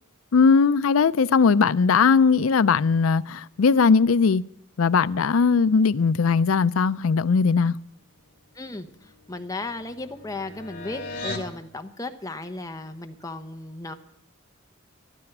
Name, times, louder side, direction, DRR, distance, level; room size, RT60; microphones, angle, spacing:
voice 1, 0.3-4.4 4.8-7.7, left 5 dB, 80° left, 0.5 m, -19 dB
sound 1, 8.4-11.5, left 2 dB, 45° left, 2.2 m, -39 dB
voice 2, 8.5-13.9, left 2 dB, 15° left, 0.9 m, -35 dB
13.0 x 13.0 x 6.0 m
head